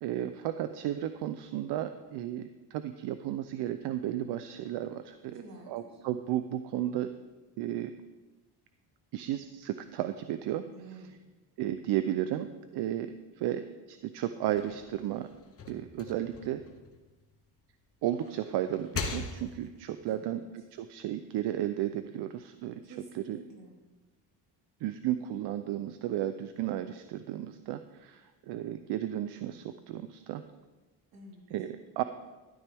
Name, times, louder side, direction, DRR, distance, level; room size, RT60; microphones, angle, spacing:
voice 1, 0.0-5.3 5.7-7.1 7.6-7.9 9.1-10.6 10.9-11.0 11.6-15.3 15.7-16.6 18.0-20.4 20.8-23.4 24.8-30.4 31.5-32.0, right 12 dB, 80° right, 10 dB, 0.7 m, -34 dB
voice 2, 5.3-6.0 10.7-11.2 20.1-20.4 22.8-23.8 31.1-31.5, right 2 dB, 60° right, -3 dB, 4.0 m, -49 dB
sound 1, 14.4-17.6 18.0-19.8, left 4 dB, 35° left, 1.3 m, -41 dB
13.0 x 12.0 x 3.5 m, 1.2 s
cardioid pair, 145°, 40 cm